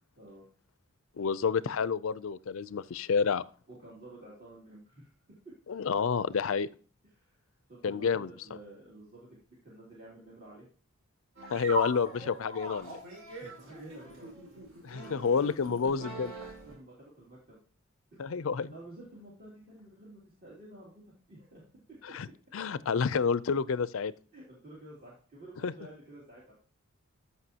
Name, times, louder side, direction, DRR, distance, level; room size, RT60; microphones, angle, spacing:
voice 1, 1.2-3.4 5.7-6.7 7.8-8.3 11.5-13.0 14.8-16.3 18.2-18.7 22.0-22.3 22.5-24.1 25.6-25.7, left 5 dB, 70° left, 18 dB, 0.4 m, -29 dB
voice 2, 3.7-5.5 7.2-7.4 7.7-9.3 9.6-10.7 13.4-14.6 14.9-16.2 16.6-17.6 18.1-18.3 18.7-20.9 21.3-21.6 24.3-26.5, right 1 dB, 45° right, -6 dB, 2.8 m, -51 dB
sound 1, 11.4-16.7, right 1 dB, 70° right, 4.9 m, -40 dB
14.0 x 5.7 x 2.8 m, 0.41 s
head